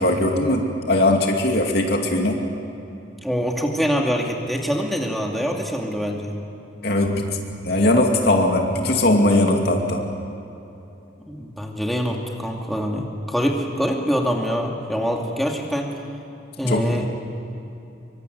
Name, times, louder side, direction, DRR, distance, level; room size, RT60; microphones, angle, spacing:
voice 1, 0.0-2.4 6.8-7.4 7.6-10.0 16.6-17.0, left 1 dB, 55° left, 1 dB, 2.6 m, -19 dB
voice 2, 3.2-6.4 11.3-15.9 16.6-17.1, equal, ahead, 0 dB, 2.5 m, -24 dB
25.5 x 24.0 x 9.5 m, 2.9 s
head